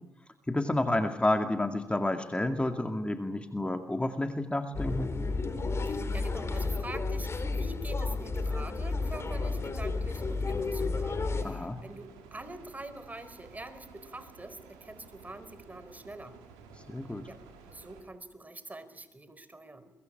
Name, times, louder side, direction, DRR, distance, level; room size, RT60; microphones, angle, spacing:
voice 1, 0.5-5.1 11.4-11.8 16.9-17.2, left 1 dB, 15° left, 6 dB, 2.2 m, -30 dB
sound 1, 4.7-11.4, left 3 dB, 40° left, 4.0 m, -32 dB
voice 2, 5.9-16.4 17.3-19.9, right 2 dB, 20° right, 13 dB, 4.6 m, -45 dB
sound 2, 8.9-18.0, right 5 dB, 85° right, 5.0 m, -53 dB
23.5 x 22.5 x 8.8 m, 0.91 s
hypercardioid pair, 45°, 7 cm